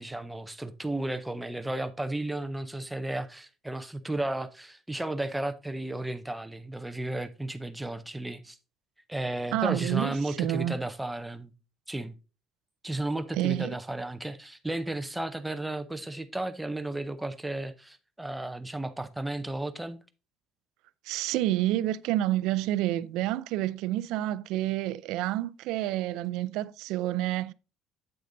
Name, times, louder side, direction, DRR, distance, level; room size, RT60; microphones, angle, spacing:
voice 1, 0.0-8.6 9.1-11.5 11.9-12.1 12.8-20.0, right 1 dB, 5° right, 0.5 m, -33 dB
voice 2, 9.5-10.7 13.3-13.7 21.1-27.5, right 14 dB, 80° right, 0.4 m, -29 dB
8.4 x 7.9 x 2.6 m
cardioid pair, 175°, 0 cm